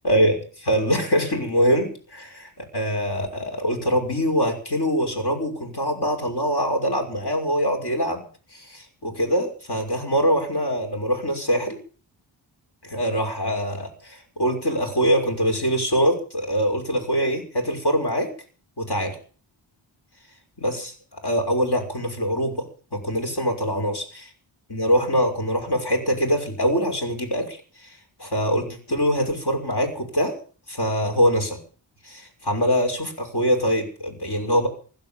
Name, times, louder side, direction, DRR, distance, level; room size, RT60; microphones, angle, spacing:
voice 1, 0.0-8.2 8.5-11.8 12.8-18.3 18.8-19.2 20.6-22.6 22.9-24.0 24.7-27.6 27.8-27.9 28.2-30.4 30.7-31.6 32.0-34.7, equal, 55° left, 3 dB, 6.0 m, -23 dB
16.0 x 12.0 x 7.2 m, 0.41 s
wide cardioid pair, 80°, 47 cm